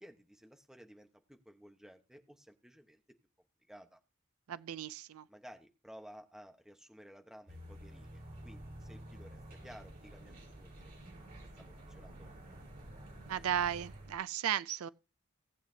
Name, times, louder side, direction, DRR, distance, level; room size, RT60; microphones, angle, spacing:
voice 1, 0.0-3.0 3.7-4.0 5.3-10.9 11.4-12.3, equal, ahead, 1.1 m, -55 dB
voice 2, 4.5-5.2 13.3-14.9, right 9 dB, 75° right, 0.4 m, -35 dB
sound 1, 7.5-14.1, right 1 dB, 40° right, 4.1 m, -50 dB
18.0 x 8.4 x 2.8 m
head